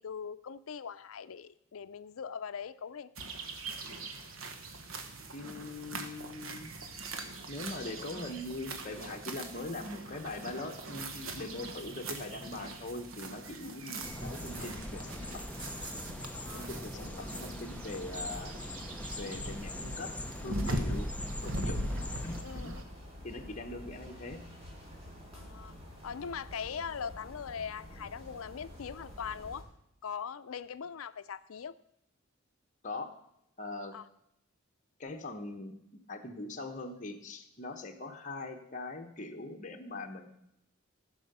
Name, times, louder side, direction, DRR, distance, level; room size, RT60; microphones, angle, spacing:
voice 1, 0.0-3.1 13.6-13.7 16.3-17.3 20.8-20.9 22.0-22.8 25.3-25.7 26.0-29.6 30.0-31.7 33.9-34.1, left 6 dB, 85° left, 14 dB, 0.5 m, -41 dB
sound 1, 3.2-22.8, right 1 dB, 75° right, 1.3 m, -41 dB
voice 2, 5.3-6.7 7.5-15.4 16.5-18.6 19.1-21.1 21.4-22.8 23.2-24.4 32.8-33.1 33.6-33.9 35.0-35.7 36.1-40.3, left 2 dB, 40° left, 3 dB, 1.1 m, -42 dB
sound 2, 14.0-22.4, left 1 dB, 5° left, 0.6 m, -41 dB
sound 3, 21.8-29.6, left 1 dB, 30° right, 3.2 m, -49 dB
15.0 x 5.6 x 6.7 m, 0.78 s
head